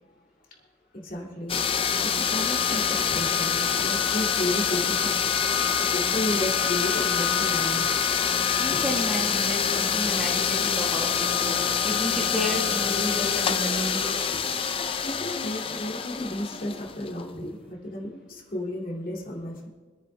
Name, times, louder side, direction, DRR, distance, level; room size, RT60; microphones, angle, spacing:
voice 1, 0.9-5.2 5.8-8.0 8.7-8.8 11.6-11.7 15.0-19.7, left 1 dB, 45° left, -3 dB, 2.4 m, -33 dB
sound 1, 1.5-17.2, left 7 dB, 30° left, 0.4 m, -25 dB
voice 2, 8.6-14.3, left 1 dB, 5° right, -2 dB, 1.3 m, -32 dB
25.5 x 9.7 x 2.3 m, 1.3 s
head